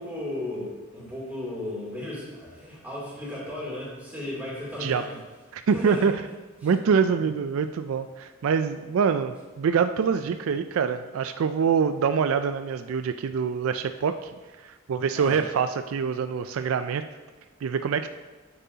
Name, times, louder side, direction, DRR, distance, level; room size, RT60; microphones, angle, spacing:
voice 1, 0.0-5.2 5.7-6.2 6.6-6.7 15.1-15.4, left 1 dB, 10° right, -7 dB, 2.9 m, -35 dB
voice 2, 5.5-6.1 6.6-14.3 14.6-17.0 17.6-18.1, right 6 dB, 75° right, 10 dB, 0.3 m, -25 dB
9.1 x 8.0 x 2.8 m, 1.2 s
head